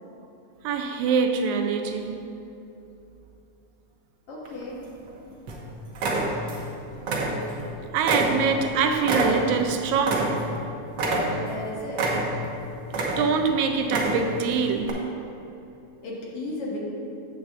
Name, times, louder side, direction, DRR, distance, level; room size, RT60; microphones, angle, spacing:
voice 1, 0.6-2.2 7.9-10.4 13.2-15.0, right 5 dB, 90° right, 2.0 m, -24 dB
voice 2, 4.3-4.8 5.1-5.2 11.4-12.0 16.0-16.8, left 1 dB, 60° left, 2.0 m, -35 dB
sound 1, 4.5-5.1 5.5-5.6 6.0-6.7 7.0-7.7 8.1-10.6 10.9-11.6 11.9-12.5 12.9-13.5 13.8-14.4 14.8-14.9, right 2 dB, 65° right, 1.1 m, -27 dB
8.3 x 7.2 x 3.6 m
omnidirectional pair, 3.3 m